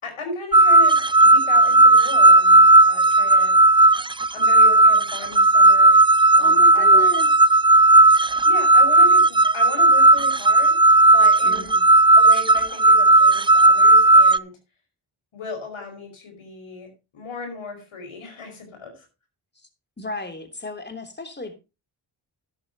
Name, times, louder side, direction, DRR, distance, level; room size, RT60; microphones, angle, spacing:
voice 1, 0.0-3.5 4.3-7.1 8.4-10.8 11.1-11.7 12.1-14.5 15.3-19.1, left 3 dB, 80° left, 5 dB, 5.4 m, -36 dB
sound 1, 0.5-14.4, right 2 dB, 10° right, 0.5 m, -14 dB
voice 2, 6.3-7.3 11.4-11.8 19.5-19.7 20.0-21.5, left 2 dB, 20° left, 6 dB, 3.3 m, -34 dB
12.5 x 11.5 x 2.9 m, 0.28 s
cardioid pair, 45°, 48 cm